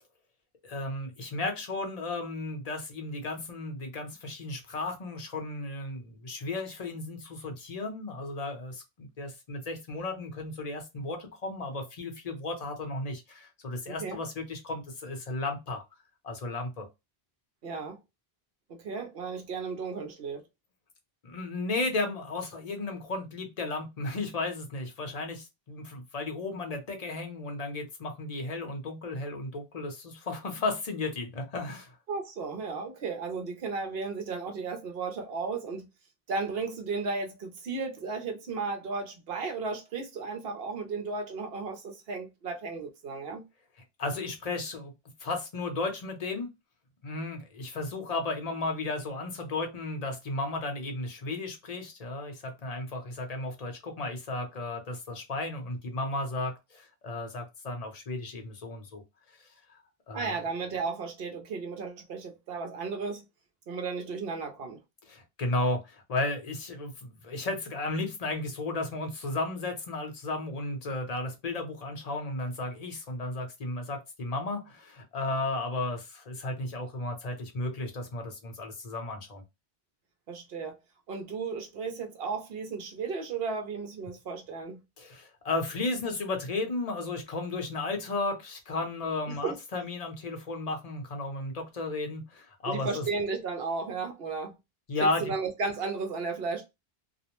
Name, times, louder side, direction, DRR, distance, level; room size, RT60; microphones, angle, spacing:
voice 1, 0.6-15.8 16.2-16.9 21.2-31.9 44.0-44.9 45.2-46.5 47.0-59.0 59.4-59.5 60.1-60.4 65.1-79.4 85.0-93.1 94.9-95.3, left 2 dB, 45° left, 0.7 m, -34 dB
voice 2, 13.9-14.2 17.6-18.0 18.7-20.4 32.1-35.9 36.3-43.4 60.1-63.2 63.7-64.8 80.3-80.7 81.1-84.8 89.3-89.5 92.7-94.5 95.0-96.7, right 4 dB, 70° right, 0.9 m, -34 dB
2.4 x 2.0 x 2.9 m
omnidirectional pair, 1.0 m